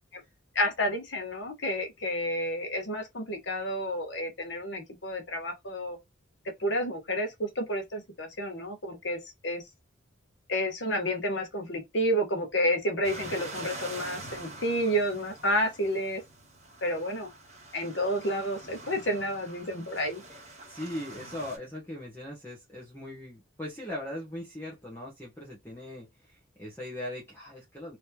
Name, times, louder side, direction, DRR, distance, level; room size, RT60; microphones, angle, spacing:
voice 1, 0.5-6.0 6.6-9.6 10.5-16.2 16.8-17.3 17.7-20.2, equal, 60° left, 1.3 m, -30 dB
sound 1, 13.0-21.6, right 2 dB, 35° right, 1.9 m, -45 dB
voice 2, 20.7-28.0, left 1 dB, 10° left, 1.2 m, -40 dB
3.4 x 3.1 x 2.9 m
head